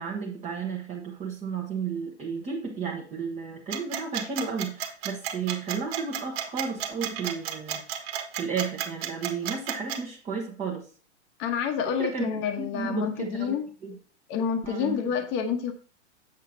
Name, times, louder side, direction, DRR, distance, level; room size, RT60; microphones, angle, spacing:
voice 1, 0.0-10.8 12.0-13.9 14.6-15.0, right 5 dB, 20° right, -1 dB, 1.2 m, -33 dB
sound 1, 3.7-10.0, right 10 dB, 55° right, 1.6 m, -32 dB
voice 2, 11.4-13.7 14.3-15.7, left 7 dB, 35° left, 4 dB, 1.2 m, -28 dB
7.6 x 7.2 x 2.8 m, 0.42 s
hypercardioid pair, 125°, 35 cm